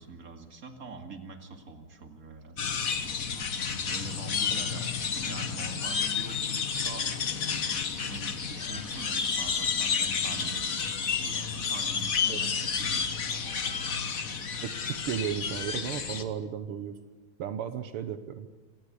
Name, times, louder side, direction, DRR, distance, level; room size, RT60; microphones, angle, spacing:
voice 1, 0.0-2.7 3.9-7.1 7.5-10.8 11.2-14.2, right 4 dB, 40° right, 4 dB, 2.7 m, -44 dB
sound 1, 2.6-16.2, left 6 dB, 45° left, 1.6 m, -31 dB
voice 2, 14.6-17.0 17.4-18.5, right 9 dB, 80° right, 10 dB, 1.9 m, -34 dB
26.0 x 18.5 x 8.3 m, 1.3 s
omnidirectional pair, 2.4 m